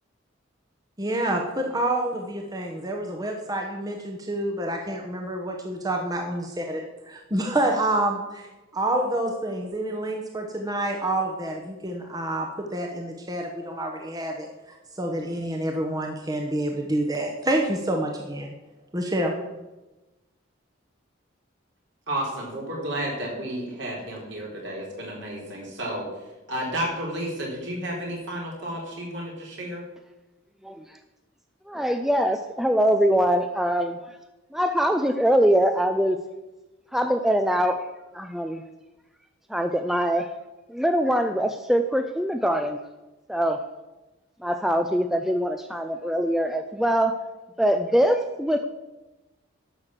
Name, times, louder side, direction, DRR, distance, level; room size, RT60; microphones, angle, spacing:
voice 1, 1.0-8.5 8.7-18.5 18.9-19.3, right 1 dB, 20° right, 2 dB, 1.0 m, -28 dB
voice 2, 22.1-26.0 26.5-29.8, right 1 dB, 65° right, -2 dB, 3.9 m, -32 dB
voice 3, 31.7-34.0 34.5-36.2 36.9-37.8 38.1-38.6 39.5-40.3 40.7-42.8 43.3-43.6 44.4-47.2 47.6-48.7, equal, ahead, 7 dB, 0.4 m, -23 dB
11.5 x 6.4 x 7.4 m, 1.1 s
head